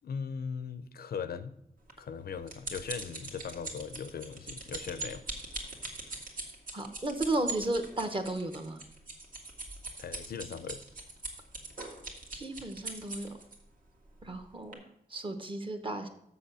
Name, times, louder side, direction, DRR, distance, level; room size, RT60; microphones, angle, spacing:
voice 1, 0.0-1.6 2.0-5.3 10.0-10.8, left 6 dB, 85° left, 0.6 m, -39 dB
sound 1, 1.9-13.6 14.2-14.4 14.7-14.8, right 3 dB, 65° right, 1.8 m, -41 dB
voice 2, 6.7-8.8 12.3-13.3 14.2-14.8 15.1-16.1, right 2 dB, 35° right, 1.0 m, -34 dB
7.0 x 6.8 x 6.1 m
wide cardioid pair, 130°, 15 cm